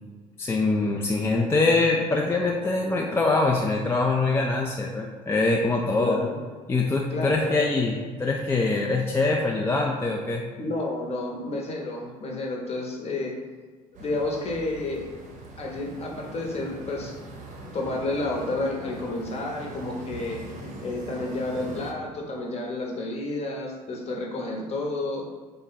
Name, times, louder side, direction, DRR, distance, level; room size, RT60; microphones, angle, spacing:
voice 1, 0.4-6.2 6.7-10.4, left 3 dB, 15° left, 0 dB, 0.3 m, -24 dB
voice 2, 6.0-6.4 7.1-7.7 10.6-13.4 14.0-15.1 15.6-17.2 17.7-20.4 20.8-25.2, left 2 dB, 35° left, -1 dB, 0.9 m, -30 dB
sound 1, 13.9-21.9, right 2 dB, 45° right, 0.7 m, -41 dB
3.3 x 2.1 x 3.9 m, 1.4 s
figure-of-eight pair, 60°, 19 cm